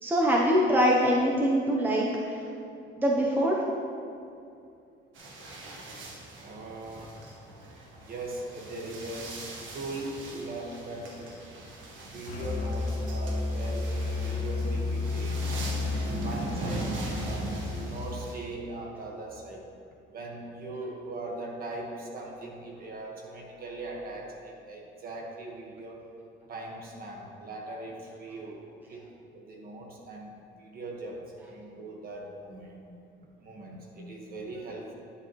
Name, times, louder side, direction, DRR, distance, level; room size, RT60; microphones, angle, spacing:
voice 1, 0.0-2.4 3.0-3.6, equal, 10° right, -3 dB, 0.8 m, -24 dB
sound 1, 5.1-18.3, right 2 dB, 70° right, 1.5 m, -40 dB
voice 2, 6.4-7.2 8.0-9.4 9.7-11.4 12.0-15.8 16.2-17.5 17.8-19.7 20.1-26.0 26.5-28.6 28.9-29.0 29.3-32.8 33.4-34.9, right 2 dB, 45° right, -1 dB, 1.5 m, -40 dB
Musical instrument, 12.3-17.9, left 3 dB, 85° left, 1.3 m, -32 dB
10.5 x 7.4 x 3.1 m, 2.5 s
cardioid pair, 125°, 21 cm